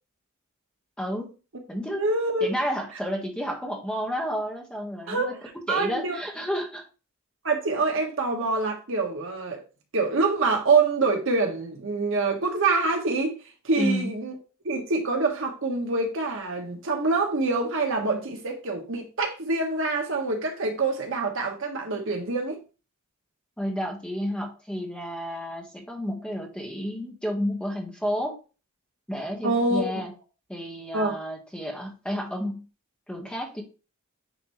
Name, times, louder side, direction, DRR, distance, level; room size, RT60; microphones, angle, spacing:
voice 1, 1.0-1.3 1.7-2.1 2.4-5.3 5.7-6.8 13.8-14.1 23.6-28.4 29.1-30.1 30.5-32.7 33.1-33.6, equal, 5° left, 1.3 m, -31 dB
voice 2, 2.0-2.5 5.1-5.3 5.7-6.2 7.4-9.6 9.9-13.4 13.6-14.3 14.6-22.6 29.4-30.0 30.9-31.1, right 3 dB, 65° right, 1.4 m, -25 dB
9.6 x 3.3 x 3.1 m
head